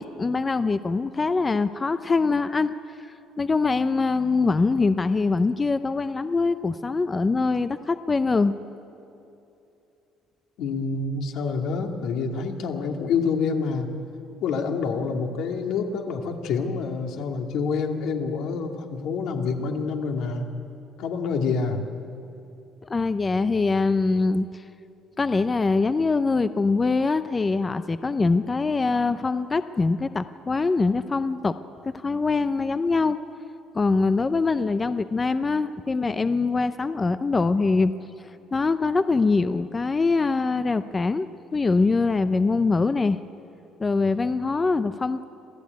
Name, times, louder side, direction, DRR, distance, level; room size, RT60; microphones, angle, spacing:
voice 1, 0.0-2.7 3.4-8.6 22.9-24.6 25.2-31.6 31.8-33.2 33.7-37.9 38.5-41.3 41.5-43.2 43.8-45.2, left 3 dB, 20° left, 11 dB, 0.6 m, -23 dB
voice 2, 10.6-13.9 14.4-20.5 21.0-21.8, left 5 dB, 70° left, 3 dB, 2.3 m, -27 dB
26.5 x 15.5 x 9.5 m, 2.8 s
cardioid pair, 140°, 0 cm